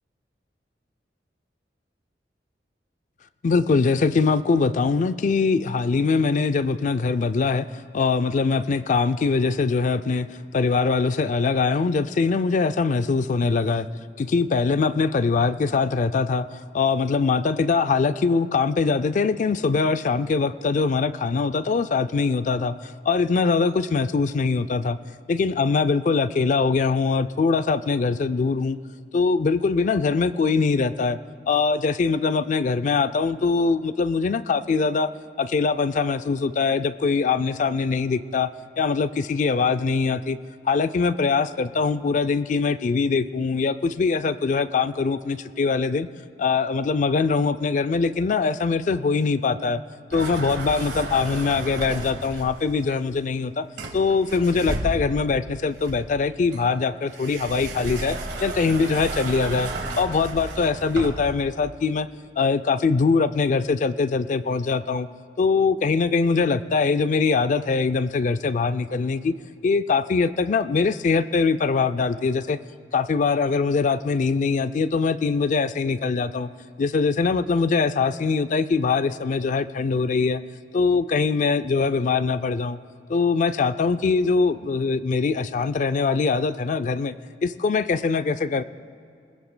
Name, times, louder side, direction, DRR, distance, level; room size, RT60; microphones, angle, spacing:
voice 1, 3.4-7.7 7.9-10.3 10.5-13.9 14.2-16.5 16.7-25.0 25.3-28.8 29.1-31.2 31.5-35.1 35.4-38.5 38.8-40.4 40.7-46.1 46.4-49.8 50.1-53.7 53.9-59.7 60.0-62.1 62.4-65.1 65.4-69.3 69.6-72.6 72.9-76.5 76.8-80.4 80.7-82.8 83.1-87.1 87.4-88.6, left 4 dB, 45° left, 13 dB, 0.3 m, -22 dB
sound 1, 50.1-52.7 53.8-55.3 55.8-61.4, right 2 dB, 70° right, 1.7 m, -33 dB
23.5 x 15.5 x 2.2 m, 2.5 s
head